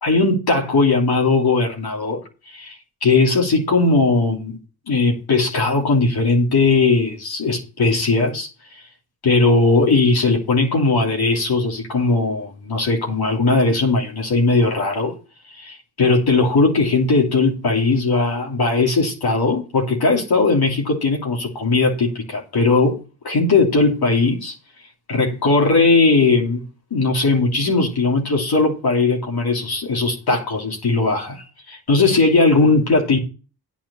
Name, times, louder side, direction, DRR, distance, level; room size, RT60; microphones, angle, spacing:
voice 1, 0.0-2.2 2.5-4.6 4.9-8.8 9.2-15.1 15.5-24.5 25.1-26.6 26.9-33.2, left 3 dB, 75° left, 3.1 m, -18 dB
9.2 x 5.7 x 7.0 m
cardioid pair, 45°, 37 cm